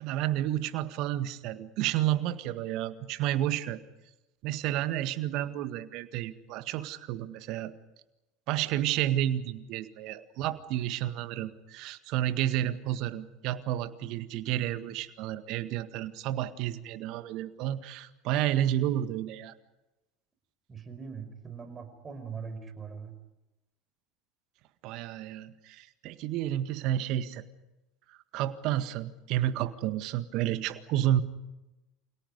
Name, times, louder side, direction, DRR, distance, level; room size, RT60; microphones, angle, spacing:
voice 1, 0.0-3.8 4.4-7.7 8.5-19.5 24.8-27.4 28.1-31.2, right 12 dB, 55° right, 11 dB, 1.8 m, -31 dB
voice 2, 20.7-23.1, right 6 dB, 25° right, 8 dB, 5.4 m, -41 dB
29.5 x 27.5 x 5.4 m, 0.98 s
figure-of-eight pair, 75°, 0 cm